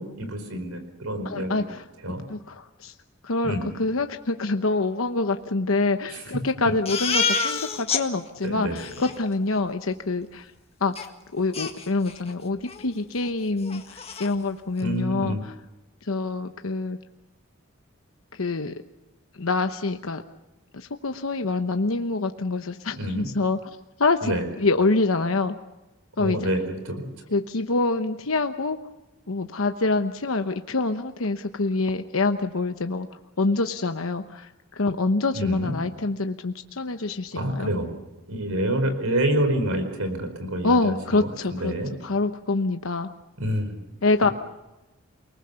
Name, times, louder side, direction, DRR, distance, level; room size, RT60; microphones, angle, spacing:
voice 1, 0.0-1.7 2.0-2.2 3.4-3.7 6.1-6.3 6.6-6.7 8.4-9.0 14.8-15.4 23.0-23.3 24.2-24.4 26.2-27.1 35.3-35.7 37.3-37.9 38.3-41.9 43.4-43.9 44.2-44.3, right 1 dB, 90° right, 8 dB, 4.7 m, -28 dB
voice 2, 1.2-1.6 2.3-2.9 3.2-10.5 10.8-10.9 11.3-15.4 16.0-17.0 18.3-18.7 19.3-20.2 20.7-24.3 24.6-25.6 26.2-26.4 27.3-28.8 29.3-33.1 33.4-37.7 40.6-41.7 42.0-43.1 44.0-44.3, left 3 dB, 80° left, 7 dB, 1.0 m, -26 dB
Crying sobbing, 6.9-8.0 8.4-8.5 8.8-9.1 11.0-11.1 11.5-12.3 12.7-12.8 13.2-13.3 13.6-14.3, left 5 dB, 30° left, 1.7 m, -28 dB
28.5 x 20.0 x 7.0 m, 1.0 s
head